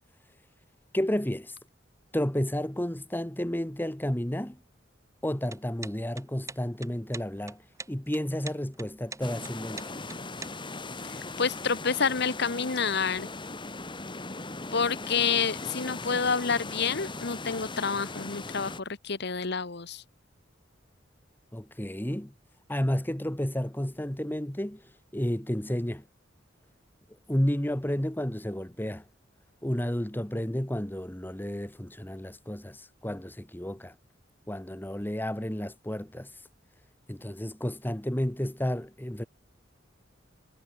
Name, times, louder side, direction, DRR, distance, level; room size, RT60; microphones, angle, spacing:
voice 1, 0.9-1.5 2.1-4.6 5.2-7.6 7.9-10.0 21.5-22.3 22.7-24.8 25.1-26.0 27.3-29.0 29.6-33.9 34.5-36.3 37.1-39.2, equal, 10° left, 1.5 m, -31 dB
sound 1, 5.4-10.8, right 3 dB, 15° right, 2.5 m, -43 dB
sound 2, 9.2-18.8, left 3 dB, 25° left, 2.4 m, -39 dB
voice 2, 11.0-13.3 14.7-20.0, left 5 dB, 60° left, 1.4 m, -28 dB
head